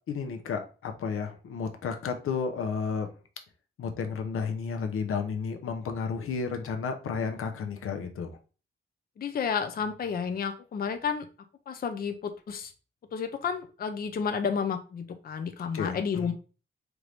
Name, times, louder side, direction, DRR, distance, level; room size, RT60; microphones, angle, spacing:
voice 1, 0.1-3.1 3.8-8.3 15.7-16.3, left 5 dB, 90° left, 5 dB, 0.8 m, -32 dB
voice 2, 9.2-11.3 11.7-12.7 13.1-16.3, left 6 dB, 45° left, 7 dB, 0.5 m, -31 dB
4.6 x 2.6 x 3.3 m, 0.35 s
wide cardioid pair, 145°, 21 cm